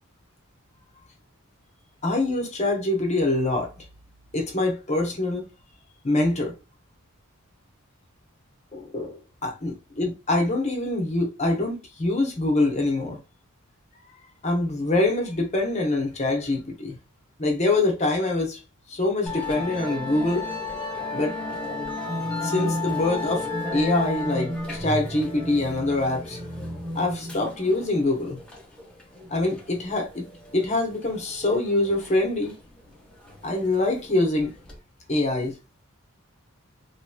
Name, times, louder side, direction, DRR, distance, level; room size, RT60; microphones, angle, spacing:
voice 1, 2.0-3.8 4.3-5.5 6.0-6.5 8.7-13.2 14.4-17.0 17.4-18.6 18.9-20.4 21.0-21.4 22.4-23.5 23.7-26.4 26.9-28.4 29.3-30.3 30.5-32.6 33.4-34.5 35.1-35.6, left 2 dB, 30° left, 0.8 m, -25 dB
Musical instrument, 19.3-34.8, left 2 dB, 5° left, 0.8 m, -33 dB
3.1 x 2.9 x 2.2 m
head